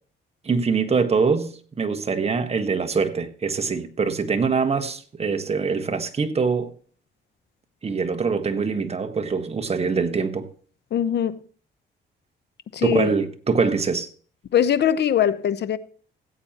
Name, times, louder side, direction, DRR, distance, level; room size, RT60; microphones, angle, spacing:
voice 1, 0.4-6.7 7.8-10.5 12.8-14.1, right 5 dB, 30° right, 1.3 m, -24 dB
voice 2, 10.9-11.3 12.7-13.1 14.5-15.8, left 9 dB, 60° left, 0.8 m, -21 dB
16.5 x 8.7 x 2.9 m
cardioid pair, 90°, 20 cm